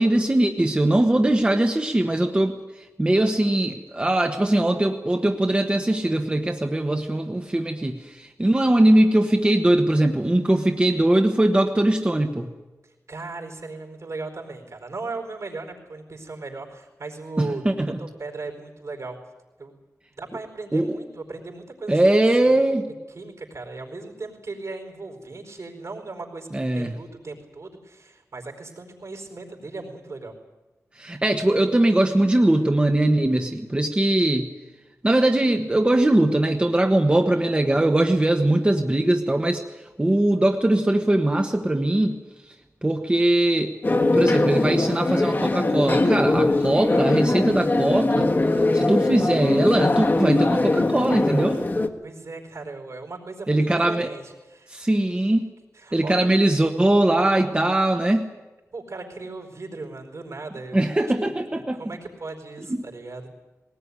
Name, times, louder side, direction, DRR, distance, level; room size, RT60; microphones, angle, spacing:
voice 1, 0.0-2.5 3.0-12.5 17.4-18.0 20.7-21.0 21.9-22.9 26.5-26.9 31.0-34.5 35.0-39.6 40.0-42.2 42.8-43.7 44.1-48.4 48.7-51.6 53.5-54.1 54.7-55.5 55.9-58.3 60.7-61.8 62.7-62.8, right 1 dB, 20° right, 3 dB, 1.2 m, -21 dB
voice 2, 12.8-17.6 18.0-19.2 19.6-19.7 20.2-22.0 22.4-22.5 23.1-30.4 52.0-54.9 55.7-56.3 58.7-60.8 61.5-63.3, right 3 dB, 65° right, 4 dB, 4.6 m, -37 dB
sound 1, 43.8-51.9, left 2 dB, 40° left, 1.6 m, -21 dB
19.5 x 19.0 x 9.8 m, 1.1 s
wide cardioid pair, 110°, 5 cm